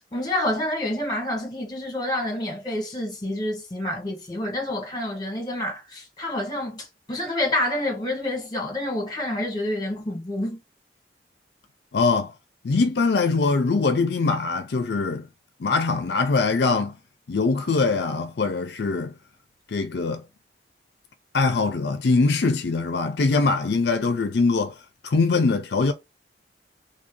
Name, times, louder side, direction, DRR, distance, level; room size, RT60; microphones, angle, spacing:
voice 1, 0.1-10.6, left 1 dB, 25° left, 1.4 m, -28 dB
voice 2, 11.9-12.3 12.6-15.3 15.6-16.9 17.3-19.1 19.7-20.2 21.3-24.7 25.0-25.9, left 4 dB, 70° left, 0.5 m, -22 dB
3.3 x 2.6 x 3.7 m
head